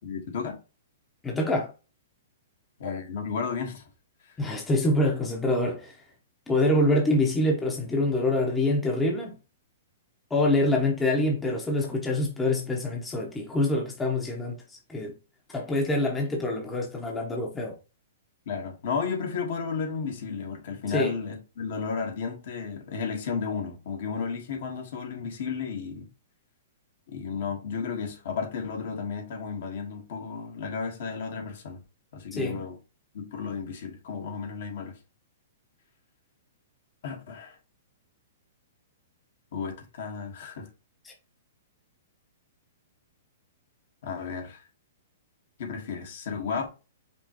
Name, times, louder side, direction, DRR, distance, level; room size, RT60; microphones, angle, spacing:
voice 1, 0.0-0.6 2.8-3.8 18.5-26.1 27.1-31.8 32.1-32.8 33.1-35.0 37.0-37.5 39.5-40.7 44.0-44.6 45.6-46.7, left 5 dB, 60° left, 1.4 m, -33 dB
voice 2, 1.2-1.7 4.4-5.9 6.5-9.3 10.3-14.6 14.9-15.1 15.5-17.7 20.9-21.1 32.3-32.6 41.0-41.1, left 1 dB, 10° left, 0.8 m, -25 dB
5.2 x 3.0 x 2.9 m
hypercardioid pair, 150°, 0 cm